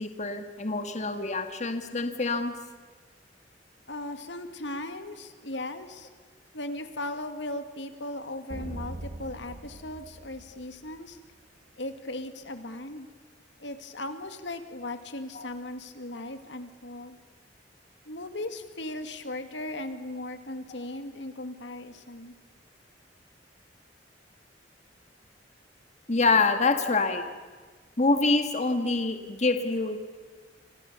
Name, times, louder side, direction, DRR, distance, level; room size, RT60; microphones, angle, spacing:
voice 1, 0.0-2.5 15.3-15.5 26.1-27.2 28.0-30.0, left 3 dB, 40° left, 6 dB, 1.8 m, -26 dB
voice 2, 3.9-6.1 6.5-11.2 11.8-13.1 13.6-17.2 18.1-22.3, left 1 dB, 75° left, 8 dB, 2.2 m, -37 dB
sound 1, 8.5-11.2, right 1 dB, 45° right, 1.3 m, -41 dB
29.5 x 25.5 x 6.9 m, 1.5 s
head